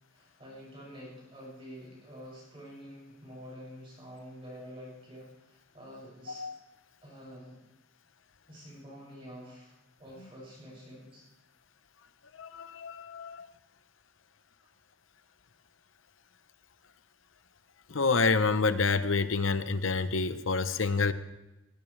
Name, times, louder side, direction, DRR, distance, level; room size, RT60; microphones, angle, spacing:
voice 1, 0.1-6.5 7.0-7.6 8.5-11.3, equal, 30° right, -5 dB, 6.4 m, -48 dB
voice 2, 12.4-13.5 17.9-21.1, left 4 dB, 85° left, 12 dB, 0.9 m, -28 dB
18.5 x 18.0 x 3.3 m, 1.0 s
head